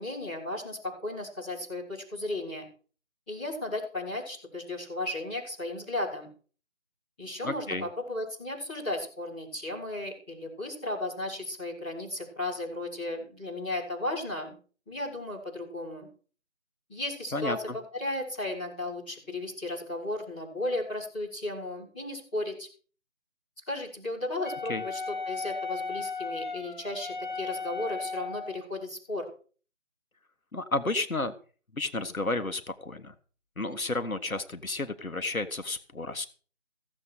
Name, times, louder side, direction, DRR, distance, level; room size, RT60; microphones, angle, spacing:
voice 1, 0.0-2.7 3.3-6.3 7.2-14.6 14.9-16.1 16.9-17.6 17.9-22.7 23.7-29.3, left 1 dB, 5° left, -11 dB, 3.5 m, -35 dB
voice 2, 7.4-7.9 17.3-17.6 24.7-24.8 30.5-31.4 31.7-33.1 33.6-36.3, left 2 dB, 90° left, 10 dB, 1.6 m, -31 dB
Wind instrument woodwind instrument, 24.4-28.6, left 4 dB, 35° left, 1.2 m, -36 dB
16.0 x 7.7 x 6.4 m, 0.41 s
figure-of-eight pair, 165°, 41 cm